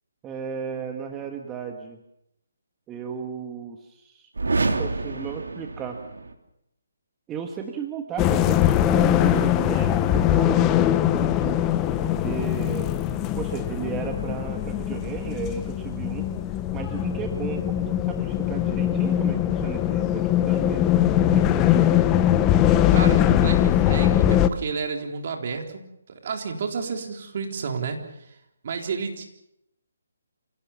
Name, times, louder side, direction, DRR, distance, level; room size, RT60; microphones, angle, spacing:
voice 1, 0.2-2.0 2.9-4.3 4.8-6.0 7.3-11.6 12.0-12.9 13.4-16.3 16.7-20.8 21.3-22.2, right 7 dB, 15° right, 4 dB, 1.4 m, -34 dB
sound 1, 4.3-6.3, right 3 dB, 90° right, 3.2 m, -27 dB
sound 2, 8.2-24.5, left 11 dB, 15° left, 0.9 m, -21 dB
voice 2, 22.9-28.0 28.3-28.4 28.6-29.2, right 5 dB, 45° right, 3 dB, 3.9 m, -31 dB
28.0 x 17.0 x 7.3 m, 0.83 s
hypercardioid pair, 160°, 0 cm